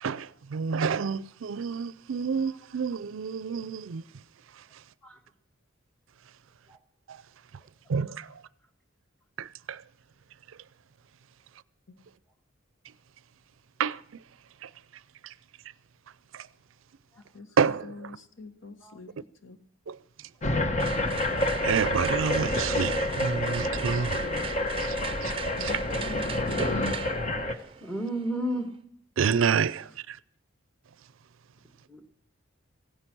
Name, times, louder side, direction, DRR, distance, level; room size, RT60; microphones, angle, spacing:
voice 1, 0.0-4.0 7.1-7.2 7.9-8.3 9.4-9.8 13.8-14.0 14.6-14.7 16.3-16.4 17.6-17.9 19.9-20.0 21.6-24.2 24.8-25.3 25.6-25.7 26.6-26.7 29.2-30.2, right 6 dB, 80° right, 0.5 m, -29 dB
voice 2, 17.3-19.1 19.4-19.6 25.5-26.5, left 3 dB, 70° left, 1.2 m, -44 dB
sound 1, 20.4-27.5, left 1 dB, 35° left, 1.1 m, -28 dB
Toy Gun Trigger Distance, 20.8-28.8, right 6 dB, 25° right, 0.7 m, -40 dB
voice 3, 27.8-28.7 31.9-32.0, right 1 dB, 5° left, 1.7 m, -32 dB
16.5 x 9.8 x 6.1 m
head